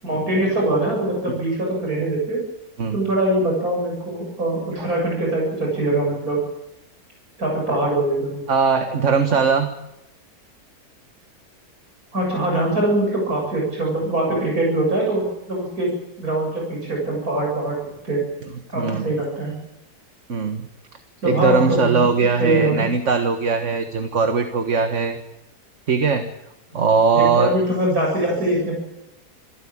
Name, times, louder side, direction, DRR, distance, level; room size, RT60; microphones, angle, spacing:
voice 1, 0.0-2.4 2.9-6.4 7.4-8.4 12.1-15.9 16.2-17.8 18.0-18.2 18.7-19.5 21.2-22.1 22.4-22.8 26.7-26.8 27.1-28.8, right 1 dB, 70° right, -1 dB, 7.9 m, -22 dB
voice 2, 8.5-9.7 18.8-19.1 20.3-20.6 21.2-25.2 25.9-26.3 26.7-27.5, right 5 dB, 50° right, 7 dB, 1.8 m, -20 dB
27.5 x 15.0 x 8.8 m, 0.91 s
omnidirectional pair, 1.6 m